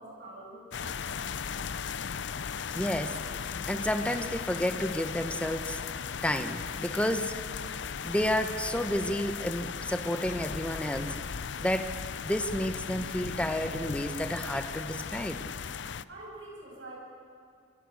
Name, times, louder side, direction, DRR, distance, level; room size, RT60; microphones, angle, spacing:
voice 1, 0.0-1.4 16.1-16.9, right 2 dB, 75° right, -3 dB, 7.4 m, -46 dB
sound 1, 0.7-16.0, left 6 dB, 70° left, 0.6 m, -37 dB
voice 2, 2.7-7.4 8.0-15.4, equal, 5° left, 8 dB, 1.3 m, -31 dB
27.0 x 26.0 x 6.6 m, 2.3 s
head